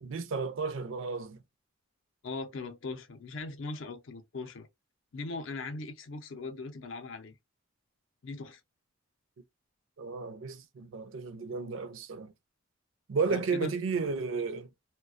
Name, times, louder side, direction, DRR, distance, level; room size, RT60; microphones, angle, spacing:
voice 1, 0.0-1.4 10.0-12.3 13.1-14.7, right 4 dB, 65° right, 0.4 m, -33 dB
voice 2, 2.2-4.7 5.1-7.4 8.2-8.6 13.3-13.7, left 3 dB, 65° left, 0.5 m, -39 dB
2.3 x 2.2 x 2.4 m
head